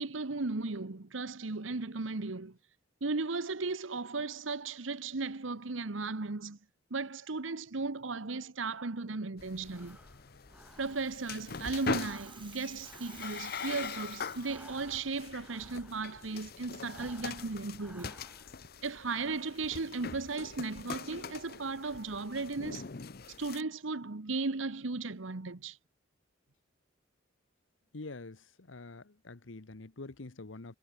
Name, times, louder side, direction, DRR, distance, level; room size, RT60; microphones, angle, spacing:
voice 1, 0.0-2.6 3.0-6.6 6.9-10.0 10.8-18.1 18.8-22.8 23.4-25.8, right 3 dB, 90° right, 1.2 m, -36 dB
sound 1, 9.4-23.6, left 5 dB, 50° left, 0.9 m, -43 dB
Breathing, 9.6-11.4 11.7-16.3 16.8-18.7, right 1 dB, 5° right, 3.6 m, -56 dB
Rattle (instrument), 10.3-15.1, right 8 dB, 25° right, 1.6 m, -54 dB
voice 2, 27.9-30.8, left 3 dB, 80° left, 1.1 m, -46 dB
head